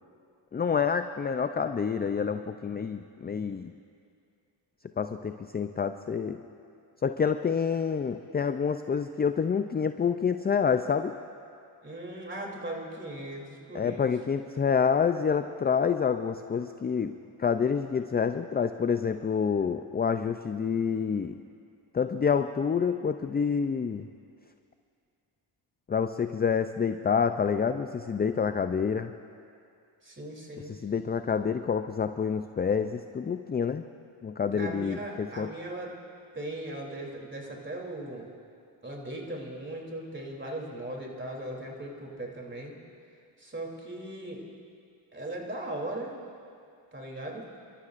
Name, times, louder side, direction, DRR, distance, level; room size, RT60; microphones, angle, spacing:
voice 1, 0.5-3.7 5.0-6.4 7.0-11.1 13.7-21.4 21.9-24.1 25.9-29.1 30.7-33.8 34.2-35.5, left 6 dB, 20° left, 9 dB, 0.4 m, -28 dB
voice 2, 11.8-14.1 30.0-30.7 34.5-36.0 36.3-38.3 38.8-42.7 43.4-44.5 45.1-46.1 46.9-47.5, right 1 dB, 20° right, -1 dB, 3.1 m, -38 dB
29.0 x 13.0 x 2.5 m, 2.4 s
supercardioid pair, 55°, 49 cm